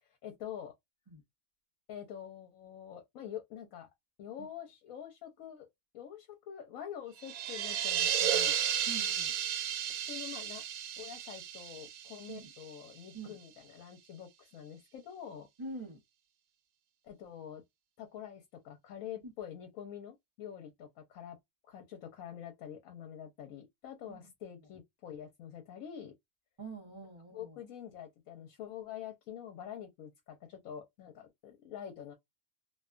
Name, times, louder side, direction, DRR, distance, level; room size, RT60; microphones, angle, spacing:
voice 1, 0.0-0.7 1.9-3.9 4.2-5.7 5.9-8.5 9.9-10.6 11.0-15.5 17.0-17.6 18.0-21.4 21.6-26.1 27.3-32.1, left 9 dB, 80° left, 1.1 m, -46 dB
sound 1, 7.2-12.8, right 9 dB, 85° right, 1.0 m, -33 dB
voice 2, 8.9-9.3 12.3-12.5 13.1-13.4 15.6-16.0 19.2-19.3 24.1-24.3 26.6-27.6, right 3 dB, 25° right, 0.7 m, -45 dB
2.5 x 2.3 x 2.3 m
omnidirectional pair, 1.5 m